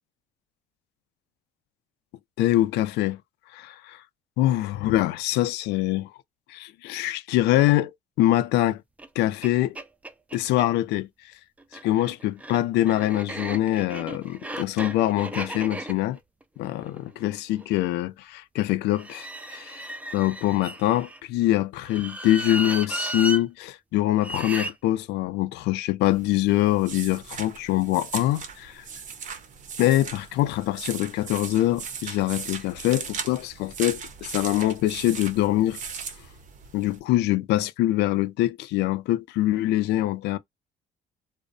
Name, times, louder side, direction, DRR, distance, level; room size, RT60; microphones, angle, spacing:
voice 1, 2.4-3.2 3.5-4.0 4.4-6.1 6.5-7.9 8.2-8.8 9.2-9.8 10.3-11.1 11.8-16.2 16.6-28.8 29.8-35.8 36.7-40.4, left 15 dB, 85° left, 0.4 m, -24 dB
sound 1, 9.0-9.1 9.4-9.5 9.7-10.7 11.6-17.8 18.9-21.2 21.8-23.4 24.2-24.7, right 1 dB, 10° right, 0.3 m, -35 dB
sound 2, 26.0-37.0, right 6 dB, 50° right, 0.6 m, -38 dB
2.5 x 2.0 x 2.5 m
cardioid pair, 110°, 17 cm